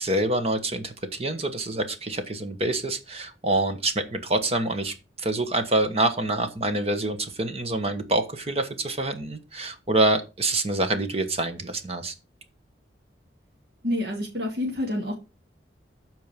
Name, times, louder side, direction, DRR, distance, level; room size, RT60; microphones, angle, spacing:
voice 1, 0.0-12.1, right 2 dB, 35° right, 8 dB, 1.2 m, -26 dB
voice 2, 13.8-15.1, left 1 dB, 60° right, -1 dB, 2.4 m, -28 dB
13.0 x 4.7 x 5.2 m, 0.28 s
head